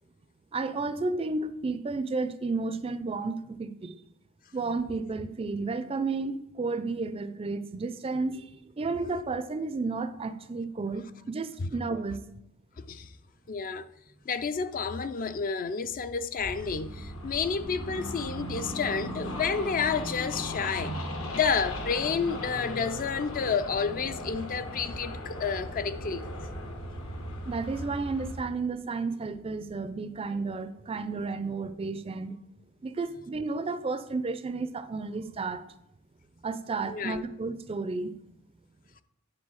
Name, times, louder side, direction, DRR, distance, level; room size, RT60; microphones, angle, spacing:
voice 1, 0.5-4.0 4.5-12.2 27.5-32.4 32.8-35.6 36.4-38.2, right 3 dB, 25° right, 0.4 m, -32 dB
voice 2, 12.8-13.1 13.5-13.9 14.3-26.3 36.8-37.2, left 5 dB, 40° left, 0.4 m, -30 dB
sound 1, 16.3-28.4, left 1 dB, 75° left, 1.3 m, -37 dB
9.7 x 3.8 x 6.3 m
head